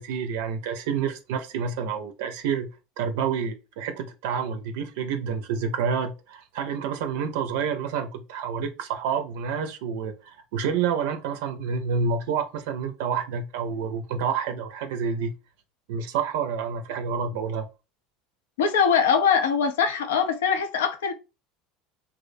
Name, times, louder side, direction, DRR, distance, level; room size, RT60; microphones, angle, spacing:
voice 1, 0.0-2.7 3.0-15.3 15.9-17.7, right 6 dB, 75° right, 0.4 m, -28 dB
voice 2, 18.6-21.1, left 6 dB, 85° left, 0.4 m, -22 dB
2.4 x 2.0 x 2.5 m
hypercardioid pair, 90°, 0 cm